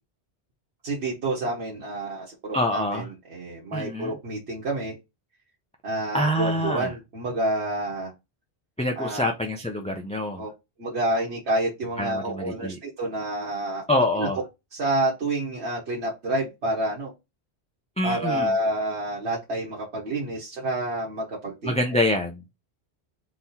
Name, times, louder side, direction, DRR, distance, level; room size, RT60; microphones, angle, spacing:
voice 1, 0.8-5.0 5.8-8.1 9.0-9.3 10.4-10.5 10.8-13.8 14.2-14.3 14.7-17.1 18.0-21.8, right 1 dB, 75° right, 1.4 m, -28 dB
voice 2, 2.5-3.1 3.7-4.2 6.1-6.9 8.8-10.4 12.0-12.8 13.9-14.4 18.0-18.5 21.6-22.4, left 1 dB, 10° left, 0.4 m, -26 dB
3.7 x 3.0 x 4.1 m
omnidirectional pair, 1.1 m